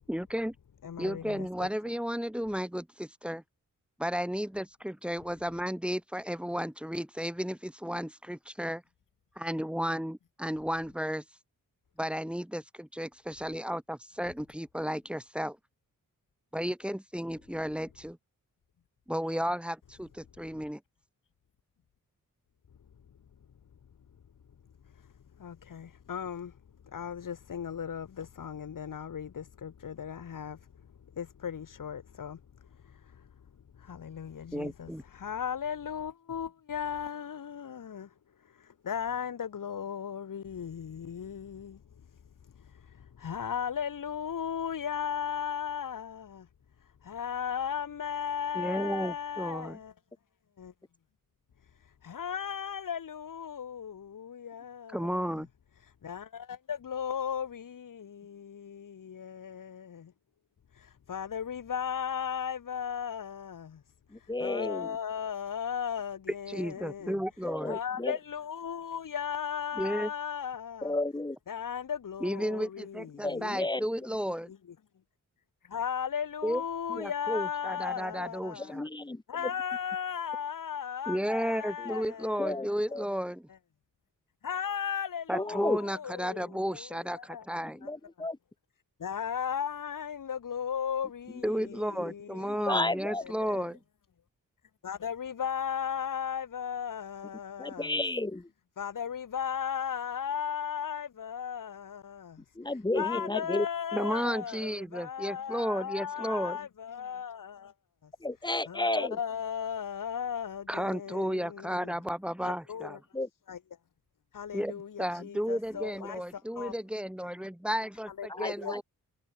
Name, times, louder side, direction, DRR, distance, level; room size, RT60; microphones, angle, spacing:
voice 1, 0.1-0.5 1.0-3.4 4.0-8.8 9.3-11.2 12.0-15.6 16.5-18.2 19.1-20.8 34.5-35.0 48.5-49.8 54.9-55.5 66.5-67.8 69.7-70.1 72.2-74.5 76.4-76.6 77.0-78.8 81.1-83.5 85.3-87.8 91.4-93.8 104.0-106.6 110.7-113.0 114.5-118.8, equal, 5° right, 3.4 m, -33 dB
voice 2, 0.8-1.7 25.4-26.5 26.9-30.6 31.2-32.4 32.8-33.2 33.8-38.1 38.5-41.8 42.6-46.5 47.0-49.9 50.6-50.7 51.8-55.4 55.8-60.1 60.7-63.8 64.2-67.2 67.7-70.9 71.5-73.6 74.5-74.6 75.6-78.8 79.3-82.8 84.4-87.5 87.8-87.9 89.0-92.8 93.1-93.6 94.8-97.9 98.8-102.4 103.0-107.7 108.0-108.1 108.7-111.9 112.4-113.0 113.5-113.6 114.3-116.7 118.1-118.8, left 8 dB, 75° left, 3.6 m, -36 dB
voice 3, 64.1-65.0 67.4-68.2 70.8-71.4 73.2-74.1 76.9-77.0 78.6-79.5 81.8-82.0 82.4-83.1 85.3-85.8 87.7-88.4 91.3-91.7 92.7-93.2 97.6-98.5 102.6-103.7 108.2-109.2 111.2-111.3 113.1-113.3 115.7-115.8 118.3-118.8, left 2 dB, 15° left, 1.9 m, -32 dB
wide cardioid pair, 130°, 33 cm